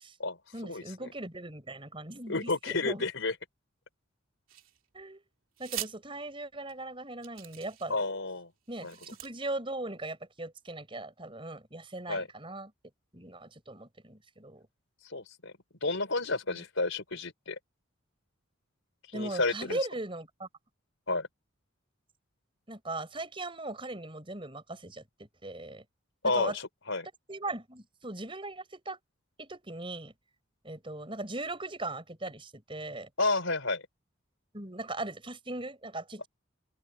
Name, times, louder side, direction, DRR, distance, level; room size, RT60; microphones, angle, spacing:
voice 1, 0.5-3.0 4.9-5.2 5.6-8.0 8.7-12.7 13.1-14.7 16.5-16.6 19.1-20.5 22.7-25.8 26.2-26.6 27.3-29.0 29.4-30.1 30.6-33.1 34.5-36.3, right 2 dB, 25° right, 5.1 m, -39 dB
voice 2, 2.3-3.3 7.9-8.5 8.8-9.0 12.1-12.3 15.0-15.5 15.8-17.6 19.1-19.8 21.1-21.3 26.2-27.1 33.2-33.8, left 3 dB, 70° left, 4.0 m, -31 dB
sound 1, 4.5-5.0 5.6-5.9 6.7-6.8 7.2-8.1 8.7-9.3, right 13 dB, 80° right, 2.8 m, -42 dB
open air
head